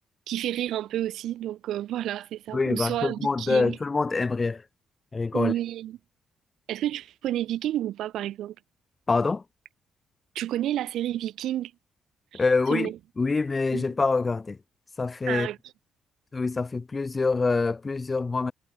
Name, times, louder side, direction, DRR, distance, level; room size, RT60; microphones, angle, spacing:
voice 1, 0.3-3.8 5.3-6.0 6.7-8.5 10.3-11.7 12.3-12.4 12.7-13.0 13.7-13.9 15.3-15.6, right 12 dB, 80° right, 4.3 m, -30 dB
voice 2, 2.5-4.6 5.1-5.5 9.1-9.4 12.3-14.6 15.0-15.5 16.3-18.5, left 4 dB, 30° left, 2.0 m, -25 dB
cardioid pair, 90°, 0 cm